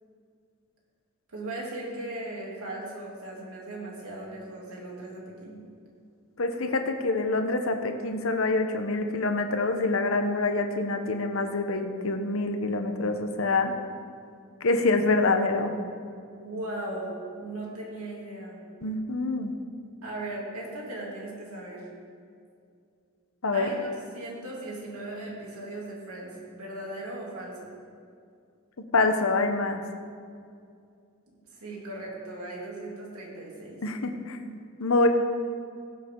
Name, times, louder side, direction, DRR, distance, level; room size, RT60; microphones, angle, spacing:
voice 1, 1.3-5.6 16.4-17.1 17.4-18.6 20.0-21.8 23.5-23.9 24.1-27.7 31.3-33.8, right 1 dB, 80° right, -3 dB, 3.0 m, -38 dB
voice 2, 6.4-13.7 14.6-15.7 18.8-19.6 23.4-23.7 28.9-29.8 33.8-35.1, left 3 dB, 65° left, 6 dB, 0.9 m, -26 dB
17.5 x 8.2 x 3.8 m, 2.4 s
head